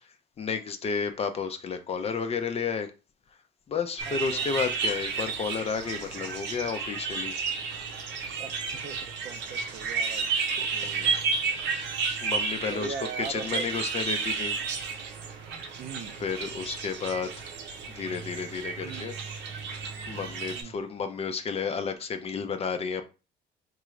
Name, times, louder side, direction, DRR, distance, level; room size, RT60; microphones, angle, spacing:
voice 1, 0.4-2.9 3.7-7.3 10.7-11.2 12.2-12.9 13.3-14.5 16.2-17.5 17.9-19.1 19.6-19.7 20.1-23.0, left 5 dB, 35° left, 0.5 m, -32 dB
sound 1, 4.0-20.6, right 5 dB, 80° right, 0.8 m, -32 dB
voice 2, 4.1-4.5 8.4-10.3 10.6-10.9 11.4-11.6 12.7-13.7 15.8-16.1 18.8-19.1 20.5-20.7, right 6 dB, 45° right, 0.5 m, -40 dB
4.6 x 2.5 x 3.1 m
cardioid pair, 125°, 18 cm